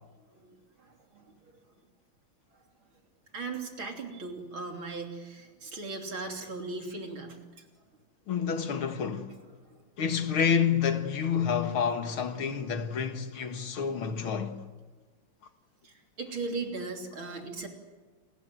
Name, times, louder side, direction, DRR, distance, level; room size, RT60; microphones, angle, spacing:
voice 1, 0.4-1.5 3.3-7.6 9.6-9.8 15.8-17.7, right 3 dB, 75° right, 4.0 m, -38 dB
voice 2, 8.3-9.3 10.0-14.6, left 7 dB, 80° left, 2.6 m, -28 dB
28.5 x 21.0 x 7.9 m
omnidirectional pair, 2.3 m